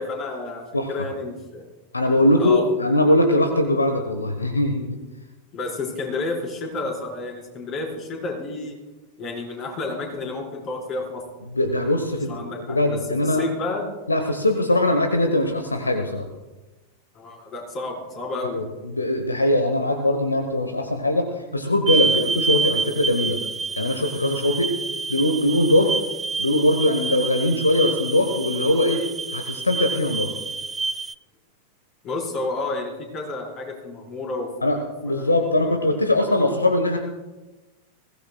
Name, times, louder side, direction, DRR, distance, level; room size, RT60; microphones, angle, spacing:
voice 1, 0.0-1.6 2.4-2.7 5.5-8.8 9.2-11.2 12.3-13.0 13.2-13.9 17.1-18.6 32.0-34.8 35.0-35.3, left 2 dB, 35° left, 0 dB, 4.7 m, -30 dB
voice 2, 1.9-5.0 11.5-13.4 14.1-16.3 18.5-21.3 21.5-23.4 23.8-24.7 25.1-26.0 26.4-29.0 29.3-30.3 34.6-37.0, left 1 dB, 80° left, 6 dB, 1.2 m, -21 dB
sound 1, 21.9-31.1, right 4 dB, 15° right, 0.4 m, -28 dB
21.5 x 17.0 x 2.3 m, 1.2 s
figure-of-eight pair, 90°, 0 cm